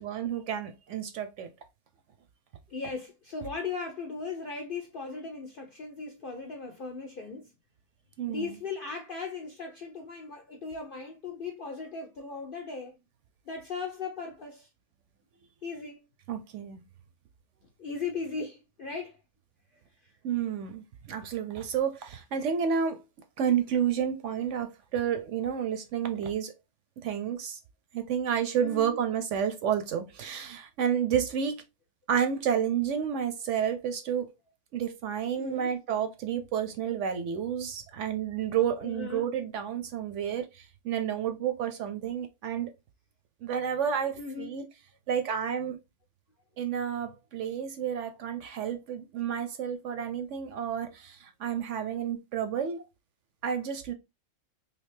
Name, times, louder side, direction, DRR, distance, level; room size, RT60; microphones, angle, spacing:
voice 1, 0.0-1.5 8.2-8.6 16.3-16.8 20.2-23.0 23.4-26.5 27.0-27.6 27.9-31.6 32.1-34.3 34.7-40.5 40.8-42.7 43.4-44.6 45.1-45.8 46.6-52.8 53.4-53.9, right 8 dB, 65° right, 0.8 m, -30 dB
voice 2, 2.7-7.5 8.3-12.9 13.5-14.7 15.6-16.0 17.8-19.2 20.0-20.1 28.6-29.0 35.4-35.7 38.8-39.2 44.2-44.5 50.0-50.1, left 4 dB, 60° left, 0.5 m, -37 dB
3.3 x 2.7 x 3.1 m
omnidirectional pair, 1.5 m